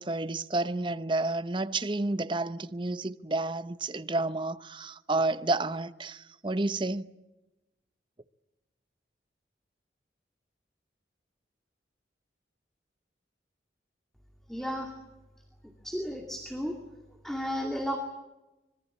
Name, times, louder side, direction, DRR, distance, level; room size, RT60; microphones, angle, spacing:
voice 1, 0.0-7.1, right 2 dB, 25° right, 0.8 m, -30 dB
voice 2, 14.5-14.9 15.8-16.8 17.2-18.0, equal, ahead, 2.3 m, -33 dB
25.5 x 21.5 x 8.4 m
head